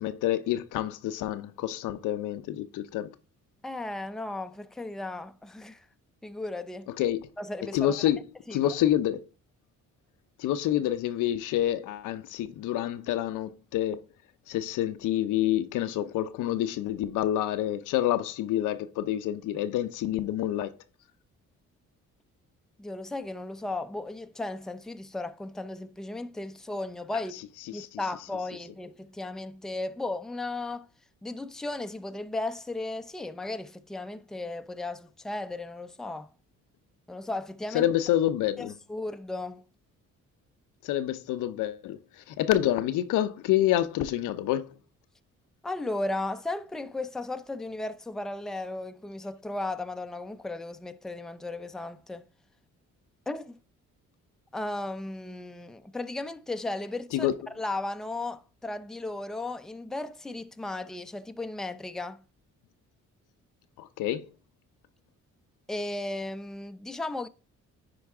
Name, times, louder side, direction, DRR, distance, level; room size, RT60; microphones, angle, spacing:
voice 1, 0.0-3.1 7.0-7.3 7.7-8.2 8.5-9.2 10.4-14.0 14.5-20.7 27.7-28.0 37.7-38.7 40.8-44.7 57.1-57.3 63.8-64.3, left 12 dB, 90° left, 0.6 m, -28 dB
voice 2, 3.6-5.8 6.2-6.9 7.4-8.0 8.5-8.7 22.8-27.4 27.7-30.9 31.2-36.3 37.1-37.8 38.6-39.6 45.6-52.2 53.3-53.5 54.5-62.2 65.7-67.3, left 2 dB, ahead, 0.4 m, -35 dB
9.9 x 4.6 x 3.5 m
cardioid pair, 90°, 30 cm